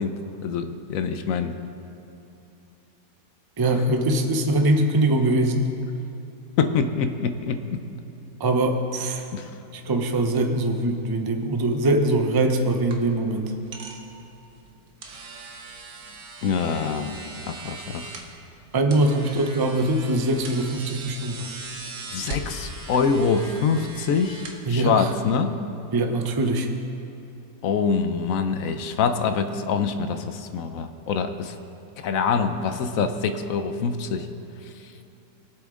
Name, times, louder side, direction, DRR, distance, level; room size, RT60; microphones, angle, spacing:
voice 1, 0.0-1.5 6.6-7.8 9.3-9.5 16.4-18.1 22.1-25.6 27.6-31.5 32.0-34.3, left 5 dB, 65° left, 9 dB, 1.0 m, -25 dB
voice 2, 3.6-5.7 8.4-9.3 9.7-13.5 18.7-21.5 24.7-25.1 25.9-26.7, right 1 dB, 35° right, 4 dB, 0.3 m, -22 dB
sound 1, 12.0-25.2, right 3 dB, 75° right, 1.7 m, -40 dB
21.0 x 7.9 x 3.7 m, 2.9 s
omnidirectional pair, 1.8 m